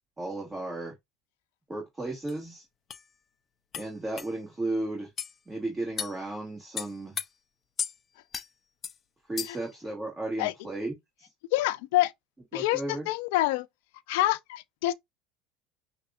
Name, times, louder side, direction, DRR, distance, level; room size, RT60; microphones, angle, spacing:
voice 1, 0.2-0.9 1.7-2.6 3.8-5.1 5.5-7.1 9.3-11.3 12.5-13.1, right 2 dB, 15° right, 2.3 m, -34 dB
sound 1, 2.3-2.4 2.9-3.0 3.7-3.9 4.2-4.3 5.2-5.3 6.0-6.2 6.8-7.3 7.8-7.9 8.3-8.5 8.8-9.0 9.4-9.7, left 7 dB, 30° left, 0.5 m, -34 dB
voice 2, 11.5-12.1 12.5-13.7 14.1-14.9, left 16 dB, 75° left, 0.6 m, -26 dB
6.4 x 2.6 x 2.4 m
supercardioid pair, 120°, 0 cm